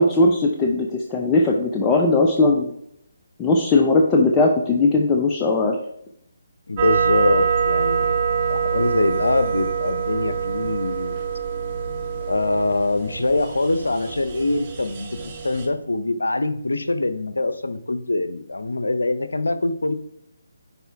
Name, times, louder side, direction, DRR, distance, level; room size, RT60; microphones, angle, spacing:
voice 1, 0.0-2.7 3.4-5.8, left 2 dB, 15° left, 0 dB, 0.7 m, -18 dB
voice 2, 6.7-8.1 8.5-11.2 12.3-19.9, left 2 dB, 75° left, 12 dB, 0.6 m, -23 dB
sound 1, 6.8-15.7, right 6 dB, 30° right, 1.2 m, -25 dB
10.0 x 4.2 x 3.5 m, 0.74 s
figure-of-eight pair, 145°, 0 cm